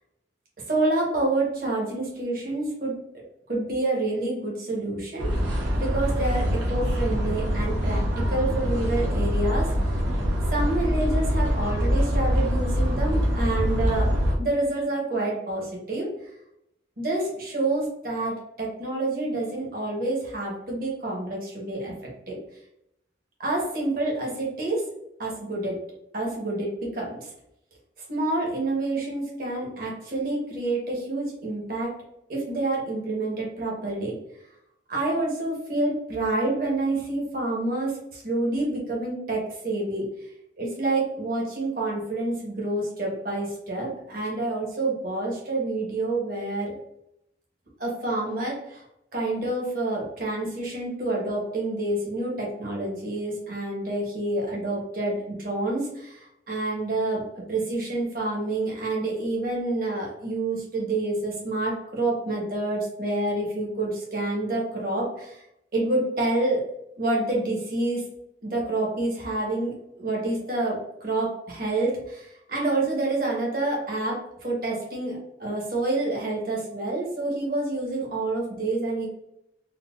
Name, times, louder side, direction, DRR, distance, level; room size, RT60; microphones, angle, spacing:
voice 1, 0.7-3.0 3.5-8.0 8.3-9.7 10.3-14.1 14.4-16.1 17.0-21.9 22.3-22.4 23.4-24.8 25.2-25.8 26.1-27.3 28.0-32.0 32.3-34.2 34.9-40.3 40.6-46.8 47.8-48.8 49.1-57.2 57.5-65.4 65.7-66.6 67.0-68.0 68.4-79.1, right 2 dB, 50° right, -3 dB, 1.0 m, -28 dB
sound 1, 5.2-14.4, equal, 85° right, 0.7 m, -24 dB
3.9 x 2.2 x 2.3 m, 0.81 s
head